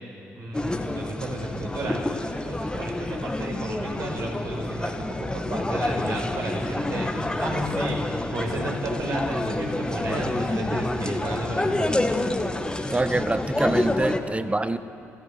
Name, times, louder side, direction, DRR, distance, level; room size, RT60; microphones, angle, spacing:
voice 1, 0.3-8.0 8.3-12.2, right 1 dB, 55° right, 0 dB, 5.2 m, -33 dB
sound 1, 0.5-14.2, left 2 dB, 10° left, 1.7 m, -28 dB
voice 2, 12.9-14.8, right 2 dB, 15° right, 13 dB, 1.0 m, -25 dB
26.5 x 16.0 x 8.0 m, 2.8 s
figure-of-eight pair, 40°, 7 cm